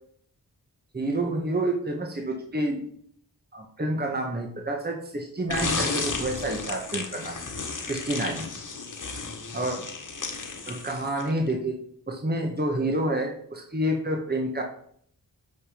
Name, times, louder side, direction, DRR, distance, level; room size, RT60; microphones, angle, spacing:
voice 1, 0.9-2.8 3.5-7.3 7.9-8.5 9.5-9.8 10.7-11.7 12.1-14.6, right 1 dB, 25° right, 1 dB, 1.5 m, -28 dB
sound 1, 5.5-11.4, left 4 dB, 55° left, 1.7 m, -33 dB
8.5 x 5.1 x 5.1 m, 0.64 s
cardioid pair, 60°, 37 cm